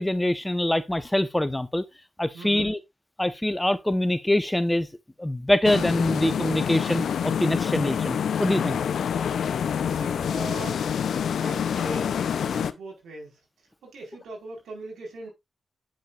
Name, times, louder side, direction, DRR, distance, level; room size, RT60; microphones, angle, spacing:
voice 1, 0.0-1.9 2.2-2.8 3.2-4.9 5.2-8.8, left 1 dB, 15° left, 0.9 m, -24 dB
voice 2, 2.3-2.7 9.9-10.8 11.4-13.4 13.8-15.3, right 2 dB, 85° right, 4.5 m, -40 dB
sound 1, 5.6-12.7, left 8 dB, 80° left, 0.6 m, -27 dB
8.6 x 7.8 x 2.5 m
supercardioid pair, 40°, 0 cm